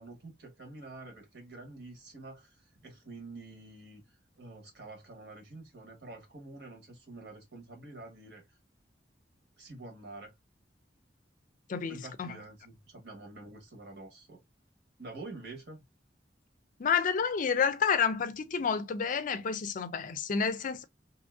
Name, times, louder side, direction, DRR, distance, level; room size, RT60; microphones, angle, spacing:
voice 1, 0.0-2.5 2.8-4.0 4.3-8.6 9.6-10.3 11.9-14.4 15.0-15.8, right 2 dB, 65° right, 1.5 m, -47 dB
voice 2, 11.7-12.4 16.8-20.8, left 6 dB, 50° left, 0.4 m, -29 dB
2.9 x 2.6 x 2.4 m
head